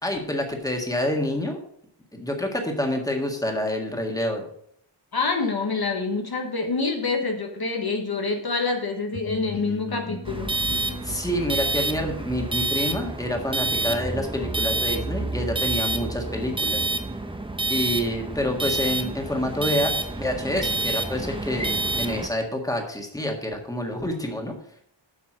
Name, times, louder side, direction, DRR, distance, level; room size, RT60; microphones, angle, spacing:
voice 1, 0.0-1.6 2.1-4.4 11.0-16.9 17.7-24.6, left 1 dB, 10° left, 2 dB, 1.7 m, -27 dB
voice 2, 5.1-10.5, left 4 dB, 55° left, 3 dB, 1.2 m, -26 dB
sound 1, 9.1-14.8, left 2 dB, 30° left, 1.1 m, -39 dB
sound 2, 10.2-22.3, right 2 dB, 10° right, 0.8 m, -28 dB
7.8 x 5.9 x 6.3 m, 0.69 s
wide cardioid pair, 90°, 45 cm